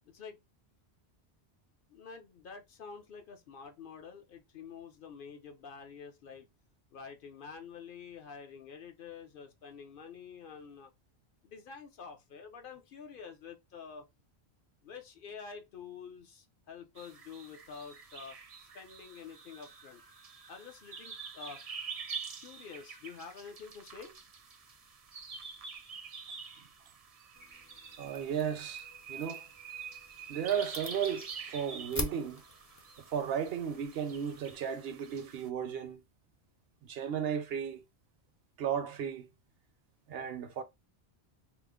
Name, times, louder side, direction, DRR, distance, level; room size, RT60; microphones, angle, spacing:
voice 1, 0.1-0.4 1.9-6.5 6.9-10.9 11.4-14.0 14.8-20.0 20.5-21.6 22.4-24.1, left 6 dB, 60° left, 0.7 m, -48 dB
sound 1, 17.0-35.5, right 5 dB, 45° right, 0.5 m, -47 dB
sound 2, 27.3-34.6, left 2 dB, 25° left, 0.4 m, -46 dB
voice 2, 28.0-29.4 30.3-32.4 33.1-36.0 36.8-37.8 38.6-39.3 40.1-40.6, right 8 dB, 70° right, 0.8 m, -35 dB
2.9 x 2.0 x 3.5 m
omnidirectional pair, 1.1 m